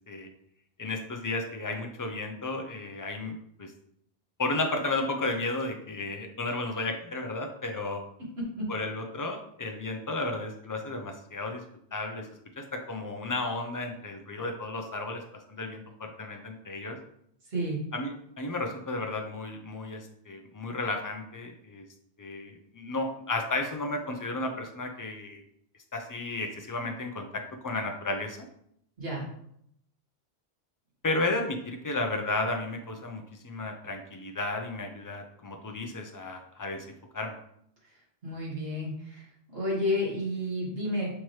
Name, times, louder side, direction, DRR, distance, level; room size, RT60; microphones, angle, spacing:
voice 1, 0.8-3.7 4.4-8.0 8.7-11.6 11.9-12.3 12.6-15.2 15.5-17.0 17.9-21.8 22.2-25.4 25.9-28.4 31.0-36.8 37.1-37.4, left 2 dB, 30° left, 3 dB, 0.4 m, -33 dB
voice 2, 38.2-39.2 39.5-41.1, left 1 dB, 70° right, -5 dB, 1.9 m, -30 dB
5.7 x 2.9 x 3.2 m, 0.71 s
omnidirectional pair, 1.1 m